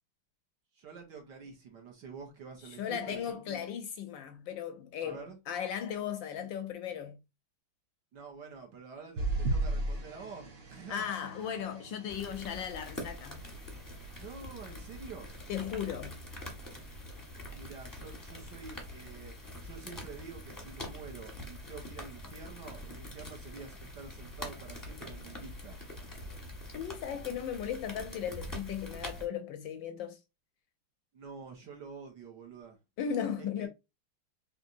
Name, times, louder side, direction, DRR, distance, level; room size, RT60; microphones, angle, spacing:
voice 1, 0.7-3.6 5.0-5.4 8.1-11.1 14.2-15.3 17.5-19.3 19.6-25.8 31.1-32.8 33.4-33.7, right 5 dB, 55° right, 1.8 m, -48 dB
voice 2, 2.8-7.2 10.9-13.4 15.5-16.2 26.7-30.2 33.0-33.7, left 8 dB, 70° left, 1.2 m, -36 dB
sound 1, 9.2-13.8 14.4-14.7 15.0-15.1, right 2 dB, 90° right, 0.5 m, -36 dB
sound 2, 12.1-29.3, left 1 dB, 15° left, 0.8 m, -45 dB
4.4 x 3.3 x 2.6 m
omnidirectional pair, 2.4 m